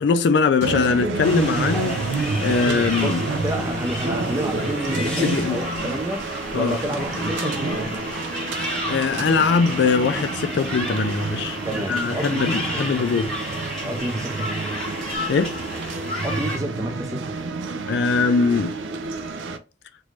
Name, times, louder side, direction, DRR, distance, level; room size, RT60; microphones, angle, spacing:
voice 1, 0.0-3.2 5.2-5.6 6.5-6.8 8.9-11.6 11.9-13.3 15.3-15.6 17.9-18.7, left 5 dB, 65° left, 0.3 m, -21 dB
sound 1, 0.6-19.6, right 3 dB, 85° right, 0.4 m, -29 dB
sound 2, 1.2-16.6, equal, 5° left, 1.0 m, -32 dB
Telephone, 2.8-3.9 4.2-4.5 4.8-11.0, left 3 dB, 55° right, 1.0 m, -36 dB
voice 2, 3.0-8.1 11.6-12.9 13.8-14.5 16.2-17.4, right 1 dB, 20° right, 0.5 m, -30 dB
3.1 x 2.6 x 3.1 m
head